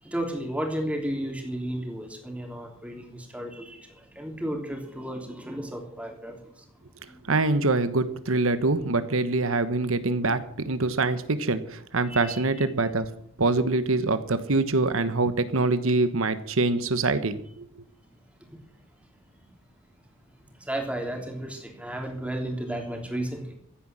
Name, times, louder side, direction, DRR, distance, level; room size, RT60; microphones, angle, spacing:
voice 1, 0.0-7.2 12.1-12.5 18.4-18.5 20.5-23.5, right 1 dB, 5° right, 2 dB, 3.2 m, -33 dB
voice 2, 7.3-13.1 13.4-17.7, right 3 dB, 70° right, 12 dB, 1.3 m, -24 dB
15.0 x 9.8 x 7.5 m, 0.67 s
head